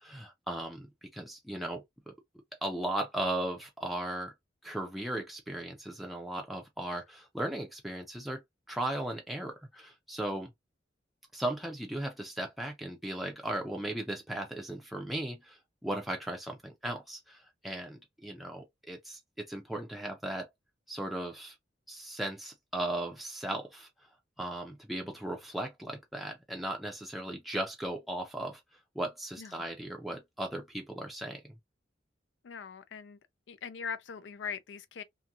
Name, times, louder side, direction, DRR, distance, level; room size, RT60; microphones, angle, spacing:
voice 1, 0.0-2.1 2.6-4.3 4.6-8.4 8.7-10.5 11.3-20.5 20.9-21.5 21.9-23.9 24.4-28.6 29.0-31.5, right 1 dB, ahead, 0.4 m, -37 dB
voice 2, 32.4-33.2 33.5-35.0, left 6 dB, 80° left, 0.4 m, -41 dB
2.8 x 2.6 x 2.3 m
head